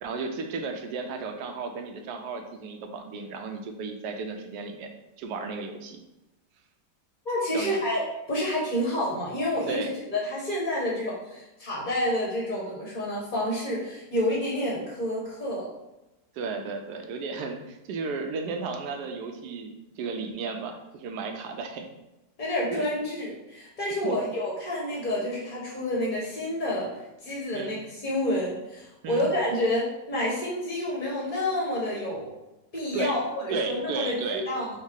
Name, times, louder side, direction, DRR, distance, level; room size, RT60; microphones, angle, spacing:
voice 1, 0.0-4.9 5.2-6.0 7.5-7.7 9.7-9.9 16.3-21.9 22.7-22.9 24.0-24.1 27.5-27.8 29.0-29.3 32.9-33.2 33.5-34.4, right 4 dB, 70° right, 4 dB, 1.1 m, -34 dB
voice 2, 7.2-9.8 10.1-15.7 22.4-26.9 27.2-32.3 32.7-34.7, left 1 dB, 40° left, -4 dB, 0.7 m, -29 dB
5.3 x 2.0 x 3.6 m, 1.0 s
omnidirectional pair, 1.9 m